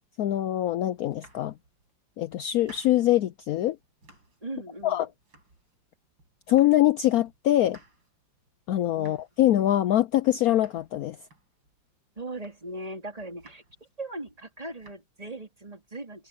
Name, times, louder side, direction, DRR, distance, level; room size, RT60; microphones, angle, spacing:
voice 1, 0.2-1.5 2.2-3.8 4.8-5.1 6.5-7.8 8.7-11.2, left 13 dB, 75° left, 0.8 m, -23 dB
Domestic sounds home sounds, 0.9-1.9 2.3-3.2 3.6-4.5 4.8-5.9 6.2-7.0 7.2-11.8 12.2-12.9 13.2-13.9 14.3-14.9, right 3 dB, 90° right, 7.8 m, -57 dB
voice 2, 4.4-5.1 9.0-9.2 12.2-13.6 14.0-16.3, right 2 dB, 20° right, 3.7 m, -39 dB
open air
omnidirectional pair, 2.0 m